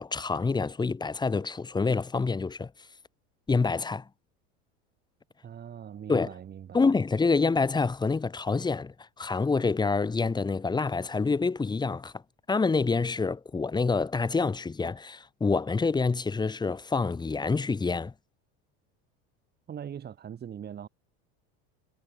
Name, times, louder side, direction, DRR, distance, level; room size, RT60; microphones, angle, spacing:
voice 1, 0.0-2.7 3.5-4.1 6.1-6.3 6.7-12.1 12.5-18.1, left 4 dB, 15° left, 2.1 m, -27 dB
voice 2, 5.4-6.8 19.7-20.9, right 9 dB, 35° right, 7.6 m, -41 dB
supercardioid pair, 125°, 30 cm